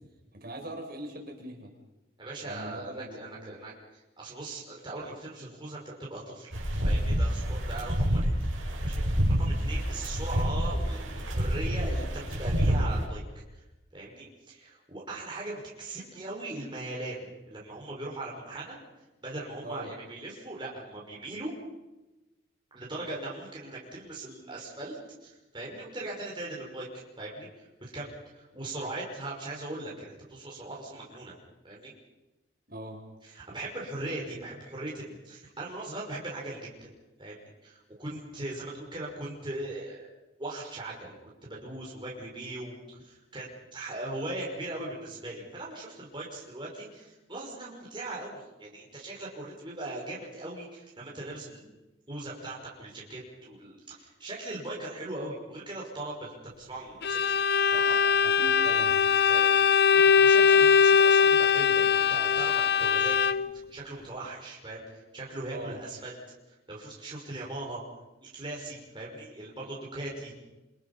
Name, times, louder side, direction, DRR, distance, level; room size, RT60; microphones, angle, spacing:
voice 1, 0.3-1.7 2.4-3.6 9.9-10.0 19.6-19.9 32.7-33.0 58.2-59.0 65.5-65.8, right 1 dB, 50° right, 2 dB, 5.7 m, -41 dB
voice 2, 2.2-6.5 6.8-8.3 8.8-9.0 9.4-13.2 13.5-13.6 13.9-18.8 19.2-21.5 22.7-26.9 27.2-31.3 31.6-31.9 33.2-36.7 37.2-40.1 40.4-51.7 52.1-57.3 57.7-58.2 58.7-58.8 59.3-66.2 66.5-67.8 68.2-70.3, right 2 dB, 25° right, -4 dB, 5.7 m, -39 dB
sound 1, 6.5-13.0, equal, 85° right, 6.6 m, -28 dB
Bowed string instrument, 57.0-63.6, left 6 dB, 55° left, 0.7 m, -21 dB
28.0 x 26.0 x 5.6 m, 1.1 s
head